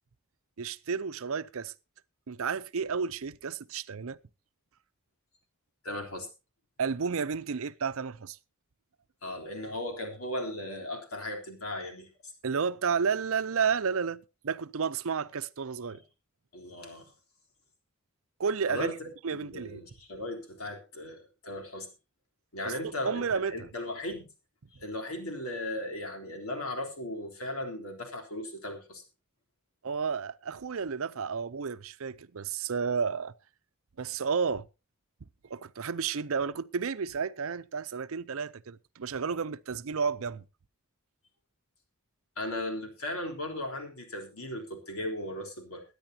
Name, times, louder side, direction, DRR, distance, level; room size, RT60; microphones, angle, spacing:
voice 1, 0.6-1.7 2.3-4.2 6.8-8.4 12.4-16.0 18.4-18.9 19.2-19.8 22.6-23.7 29.8-33.3 34.0-34.7 35.5-40.4, right 6 dB, 70° right, 0.6 m, -32 dB
voice 2, 5.8-6.3 9.2-12.1 15.9-16.0 16.5-17.1 18.7-21.9 22.5-24.3 24.7-29.0 42.4-45.8, left 1 dB, 75° left, 3.7 m, -37 dB
22.5 x 9.9 x 2.8 m
head